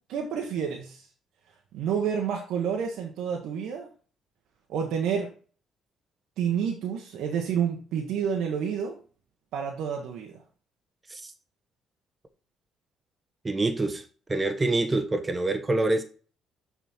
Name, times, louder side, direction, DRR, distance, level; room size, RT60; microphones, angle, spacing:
voice 1, 0.1-1.1 1.7-3.9 4.7-5.3 6.4-9.0 9.5-10.3, right 7 dB, 75° right, 1.1 m, -29 dB
voice 2, 13.4-14.0 14.3-16.0, right 2 dB, 25° right, 0.9 m, -26 dB
6.0 x 4.3 x 4.3 m
hypercardioid pair, 60°, 0 cm